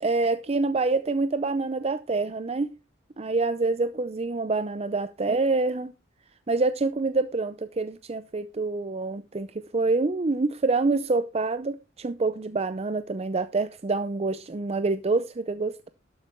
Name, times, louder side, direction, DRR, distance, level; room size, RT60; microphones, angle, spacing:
voice 1, 0.0-2.7 3.2-5.9 6.5-15.9, right 3 dB, 30° right, 0.5 m, -26 dB
12.0 x 8.3 x 4.4 m
head